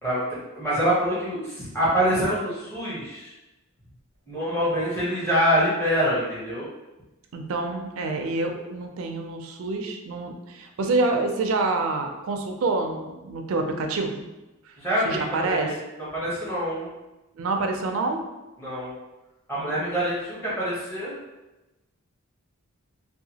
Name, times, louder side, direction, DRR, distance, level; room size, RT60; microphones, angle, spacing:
voice 1, 0.0-3.3 4.3-6.7 14.8-16.9 18.6-18.9 19.5-21.2, equal, 10° left, -10 dB, 0.8 m, -25 dB
voice 2, 7.3-14.3 14.6-14.8 15.0-15.7 17.3-18.2, right 3 dB, 70° right, 4 dB, 0.4 m, -27 dB
2.7 x 2.2 x 2.7 m, 1.0 s
head